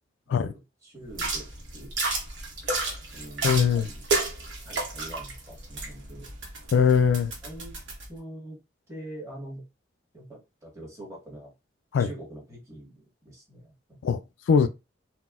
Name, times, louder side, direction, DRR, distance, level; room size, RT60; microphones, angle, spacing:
voice 1, 0.2-1.9 3.1-4.1 4.6-6.3 7.4-7.7 8.1-8.6 8.9-9.6 10.1-11.5 12.0-14.0, right 1 dB, 15° right, 1.3 m, -44 dB
sound 1, 1.1-8.1, right 3 dB, 75° right, 1.0 m, -32 dB
voice 2, 3.4-3.9 6.7-7.3 11.9-12.1 14.0-14.2 14.5-14.7, left 6 dB, 75° left, 0.3 m, -21 dB
4.0 x 2.1 x 2.3 m
head